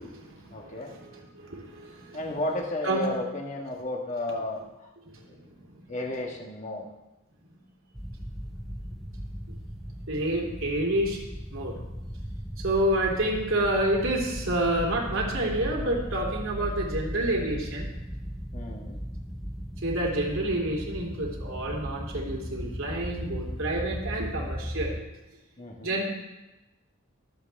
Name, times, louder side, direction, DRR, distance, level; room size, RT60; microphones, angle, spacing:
voice 1, 0.0-2.2 2.8-3.0 5.1-5.2 5.7-5.8 7.4-7.5 10.1-11.2 11.5-11.7 12.6-17.9 19.8-25.0 25.8-26.0, right 1 dB, 85° right, -2 dB, 3.1 m, -29 dB
voice 2, 0.5-0.9 2.1-4.6 5.3-5.4 5.9-6.8 18.5-19.0 25.6-26.0, left 1 dB, 35° left, 0 dB, 1.6 m, -33 dB
sound 1, 7.9-25.0, equal, ahead, 0.6 m, -37 dB
23.5 x 7.9 x 3.5 m, 1.0 s
head